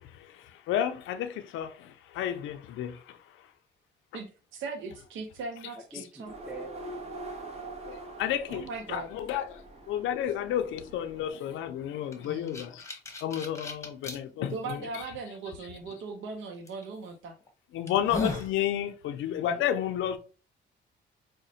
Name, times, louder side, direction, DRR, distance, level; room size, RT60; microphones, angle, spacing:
voice 1, 0.7-3.2 7.9-12.8 13.2-14.8 17.7-20.2, left 10 dB, 75° left, 0.4 m, -31 dB
voice 2, 4.1-6.3 8.5-9.1 12.2-12.6 14.4-17.3 19.5-19.6, right 4 dB, 75° right, 0.6 m, -39 dB
voice 3, 5.9-6.8 19.5-19.7, right 3 dB, 5° right, 0.6 m, -44 dB
sound 1, 6.3-11.3, right 2 dB, 35° right, 0.9 m, -44 dB
sound 2, 12.1-14.2 14.8-14.9 16.7-16.9 17.4-17.5 17.9-18.5, left 3 dB, 15° left, 1.0 m, -35 dB
4.9 x 2.1 x 2.7 m
cardioid pair, 90°, 20 cm